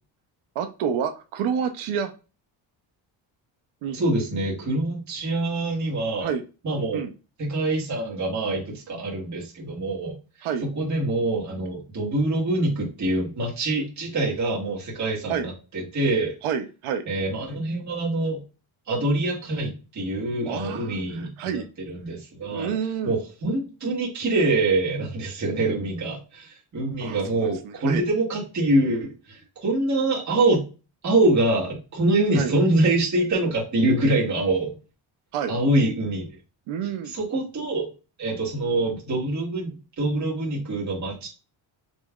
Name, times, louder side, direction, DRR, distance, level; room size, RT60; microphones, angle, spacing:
voice 1, 0.6-2.1 3.8-4.0 6.2-6.4 6.9-7.1 10.4-10.6 15.3-15.5 16.4-17.0 20.4-21.7 22.5-23.2 27.0-28.1 32.3-32.5 35.3-35.5 36.7-37.1, right 7 dB, 85° right, 7 dB, 0.7 m, -29 dB
voice 2, 3.9-6.3 6.6-7.0 7.4-10.1 10.6-16.3 17.1-18.4 18.9-22.7 23.0-30.6 31.0-34.7 35.5-36.3 37.0-37.9 38.2-41.3, right 2 dB, 35° right, -4 dB, 1.7 m, -25 dB
5.5 x 3.0 x 2.3 m, 0.32 s
cardioid pair, 115°, 48 cm